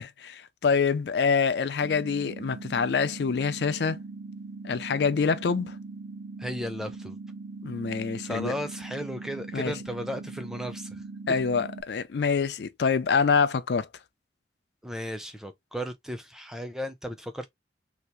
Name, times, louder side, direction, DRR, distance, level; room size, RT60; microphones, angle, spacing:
voice 1, 0.0-4.0 4.6-5.7 7.6-8.5 9.5-9.7 11.3-13.9, left 5 dB, 65° left, 0.4 m, -26 dB
sound 1, 1.8-11.8, right 3 dB, 90° right, 0.6 m, -41 dB
voice 2, 6.4-7.2 8.2-11.0 14.8-17.5, equal, 5° right, 0.5 m, -35 dB
2.9 x 2.4 x 3.3 m
head